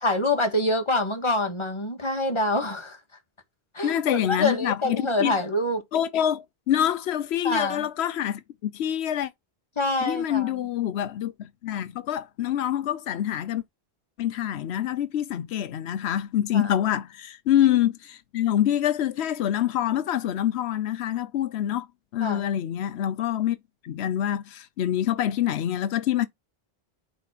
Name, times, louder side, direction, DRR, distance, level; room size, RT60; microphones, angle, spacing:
voice 1, 0.0-3.0 3.7-5.8 7.4-7.9 9.8-10.5 16.5-16.7 22.2-22.4, left 2 dB, 25° left, 1.8 m, -26 dB
voice 2, 3.8-5.4 5.9-9.3 10.0-13.6 14.2-21.9 22.1-23.6 23.8-26.3, left 11 dB, 90° left, 0.9 m, -26 dB
5.8 x 4.1 x 6.0 m
omnidirectional pair, 1.1 m